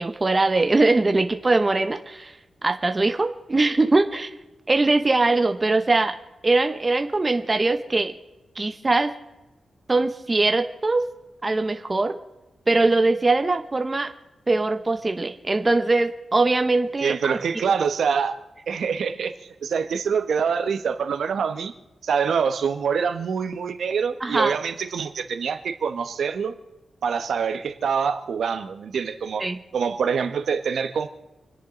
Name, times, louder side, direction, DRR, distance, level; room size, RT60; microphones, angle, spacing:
voice 1, 0.0-2.3 2.6-4.3 4.7-6.1 6.4-8.1 8.6-9.1 9.9-11.1 11.4-12.2 12.7-14.1 14.5-17.4 24.2-24.5 29.4-29.6, right 3 dB, 25° right, 7 dB, 1.1 m, -21 dB
voice 2, 17.0-18.4 18.7-19.3 19.6-21.7 22.0-26.5 27.0-29.4 29.7-31.1, right 6 dB, 80° right, 8 dB, 1.3 m, -25 dB
28.5 x 10.5 x 4.0 m, 1.0 s
wide cardioid pair, 145°, 0 cm